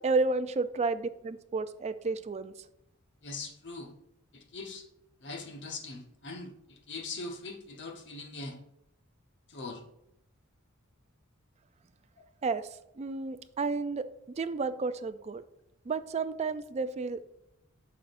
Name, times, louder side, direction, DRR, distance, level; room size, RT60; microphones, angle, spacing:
voice 1, 0.0-2.5 12.4-12.7 13.0-14.1 14.4-15.4 15.9-17.2, right 4 dB, 30° right, 11 dB, 0.4 m, -31 dB
voice 2, 3.2-3.9 4.3-4.8 5.2-8.6 9.5-9.8, left 3 dB, 55° left, 3 dB, 1.1 m, -41 dB
9.0 x 6.1 x 2.5 m, 0.82 s
head